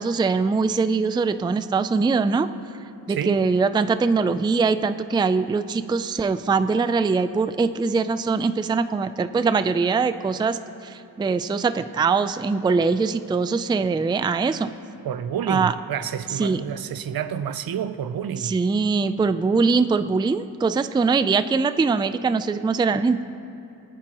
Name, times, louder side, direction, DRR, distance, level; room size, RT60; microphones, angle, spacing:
voice 1, 0.0-2.5 3.1-14.7 15.5-15.7 16.3-16.6 18.4-23.2, right 4 dB, 15° right, 0.3 m, -22 dB
voice 2, 3.1-3.4 15.0-18.6, right 8 dB, 70° right, 0.6 m, -29 dB
24.5 x 9.5 x 3.0 m
wide cardioid pair, 120°, 37 cm